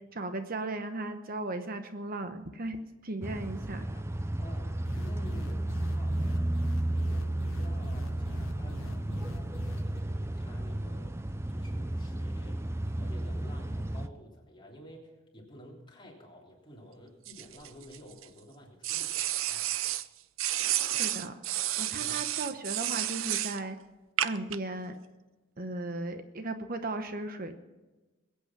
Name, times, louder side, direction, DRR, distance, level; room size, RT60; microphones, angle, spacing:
voice 1, 0.0-2.8 3.0-3.9 21.0-23.8 24.2-25.0 25.6-27.6, right 2 dB, 45° right, 8 dB, 0.9 m, -36 dB
sound 1, 3.2-14.1, right 1 dB, 15° right, 0.4 m, -33 dB
voice 2, 3.7-4.1 4.4-6.5 6.9-11.2 11.5-19.7 21.9-22.2, equal, 25° left, -2 dB, 3.3 m, -52 dB
sound 2, 4.8-10.0, left 3 dB, 75° left, 0.9 m, -46 dB
sound 3, 17.3-18.3 18.8-20.1 20.4-23.6 24.2-24.6, right 13 dB, 75° right, 0.6 m, -31 dB
21.5 x 8.6 x 6.0 m, 1.2 s
head